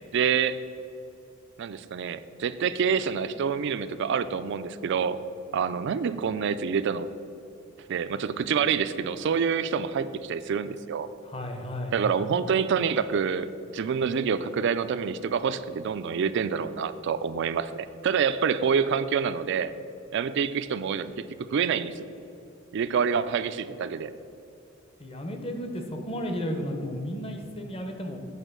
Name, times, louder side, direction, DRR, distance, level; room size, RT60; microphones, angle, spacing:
voice 1, 0.1-0.6 1.6-5.2 5.5-7.1 7.9-11.1 11.9-19.7 20.1-22.0 22.7-24.1, right 6 dB, 60° right, 13 dB, 0.4 m, -27 dB
voice 2, 11.2-11.9 25.0-28.2, equal, 30° left, 4 dB, 0.8 m, -33 dB
8.2 x 3.9 x 6.7 m, 2.6 s
head